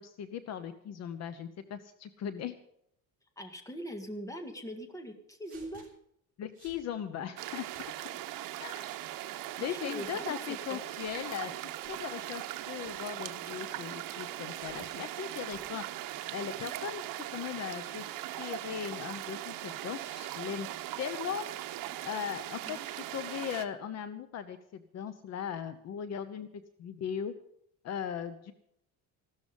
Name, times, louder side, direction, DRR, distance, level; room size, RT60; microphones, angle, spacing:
voice 1, 0.0-2.6 6.4-7.7 8.6-8.9 9.6-11.5 11.9-15.8 16.3-17.0 17.3-18.0 18.4-20.7 21.0-21.4 22.0-26.5 26.8-27.3 27.8-28.5, left 8 dB, 50° left, 11 dB, 1.0 m, -38 dB
voice 2, 3.4-5.9 9.6-10.9 22.6-22.8 23.1-23.2, equal, 10° left, 6 dB, 1.9 m, -42 dB
sound 1, 5.4-5.9 6.5-6.8 7.6-7.9 8.8-9.1 9.8-10.2 11.0-11.2 11.8-12.0 12.7-13.1 13.5-13.7 14.5-14.9 15.4-15.7, right 5 dB, 25° right, 5.7 m, -57 dB
sound 2, 7.4-23.7, right 14 dB, 70° right, 1.2 m, -40 dB
15.5 x 13.0 x 5.3 m, 0.72 s
cardioid pair, 160°, 34 cm